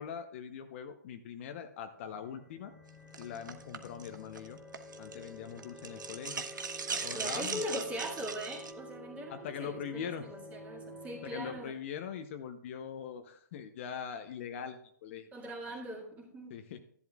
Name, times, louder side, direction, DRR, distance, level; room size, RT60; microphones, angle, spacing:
voice 1, 0.0-2.7 3.2-4.6 5.0-6.5 6.9-7.8 9.3-10.3 11.1-15.6 16.5-16.8, left 8 dB, 40° left, 7 dB, 0.8 m, -42 dB
sound 1, 2.0-11.6, left 1 dB, 5° left, 2.3 m, -49 dB
sound 2, 3.1-5.3 5.6-8.7, right 5 dB, 80° right, 1.1 m, -39 dB
voice 2, 7.1-11.7 15.3-16.6, right 1 dB, 15° right, 0 dB, 2.0 m, -41 dB
13.5 x 11.0 x 2.4 m, 0.65 s
hypercardioid pair, 145°, 10 cm